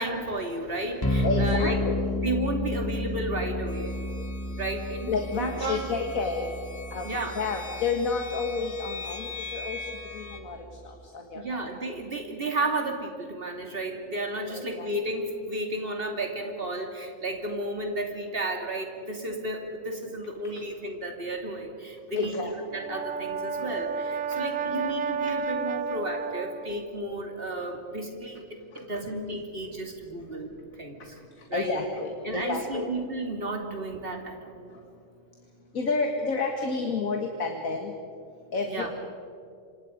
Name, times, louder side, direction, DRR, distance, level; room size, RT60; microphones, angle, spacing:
voice 1, 0.0-1.8 2.2-3.9 4.6-5.9 7.0-7.4 11.3-22.3 22.7-30.5 30.8-31.2 31.5-31.8 32.2-34.7 38.7-38.9, right 2 dB, 45° right, 2 dB, 3.0 m, -33 dB
sound 1, 1.0-11.1, left 1 dB, 15° left, 2.4 m, -33 dB
voice 2, 1.2-2.1 5.1-6.5 6.9-11.6 14.5-14.9 22.1-22.5 31.5-32.9 35.7-37.9 38.5-38.9, left 4 dB, 85° left, 3 dB, 2.2 m, -30 dB
sound 2, 3.7-10.4, left 4 dB, 50° left, 1.6 m, -42 dB
Brass instrument, 22.7-26.9, right 5 dB, 70° right, 1.3 m, -31 dB
27.0 x 26.5 x 5.2 m, 2.4 s
omnidirectional pair, 1.4 m